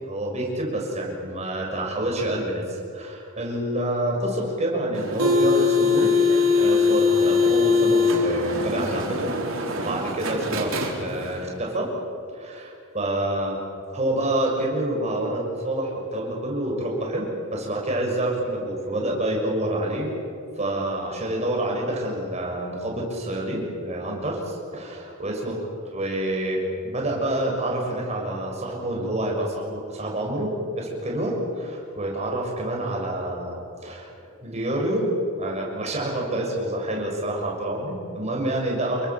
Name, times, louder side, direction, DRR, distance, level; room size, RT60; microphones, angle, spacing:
voice 1, 0.1-6.1 6.6-10.7 11.0-11.9 12.3-13.6 13.9-20.1 20.6-25.5 25.9-34.1 34.4-35.1 35.4-39.0, right 1 dB, 30° right, -1 dB, 6.4 m, -27 dB
sound 1, 4.9-11.4, left 4 dB, 65° right, 4.0 m, -22 dB
29.0 x 23.5 x 7.3 m, 2.4 s
head